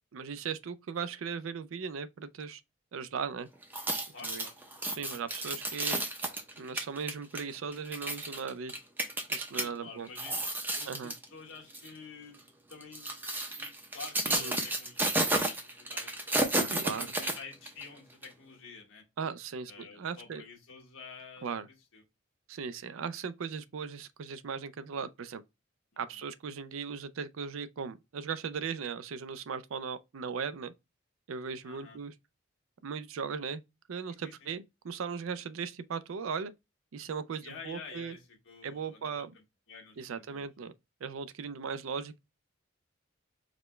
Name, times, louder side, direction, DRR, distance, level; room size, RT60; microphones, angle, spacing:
voice 1, 0.1-2.6 2.9-3.5 4.2-4.5 4.8-6.0 6.6-8.7 9.3-10.1 10.8-11.1 14.3-14.6 16.7-17.1 19.2-20.4 21.4-21.7 22.5-25.4 26.0-30.7 31.3-32.1 32.8-33.6 33.9-36.5 36.9-38.2 38.6-39.3 40.0-40.7 41.0-42.2, right 6 dB, 85° right, 0.4 m, -38 dB
sound 1, 3.6-9.7 10.1-11.2 11.7-11.9 12.7-17.8 18.2-18.3, right 1 dB, 10° right, 0.5 m, -32 dB
voice 2, 4.1-4.5 9.6-10.4 10.8-13.2 13.6-19.0 19.7-21.5 21.9-22.0 25.9-26.0 31.6-32.0 34.1-34.5 37.4-39.2 39.7-40.5, left 5 dB, 75° left, 1.4 m, -49 dB
4.9 x 2.2 x 3.1 m
head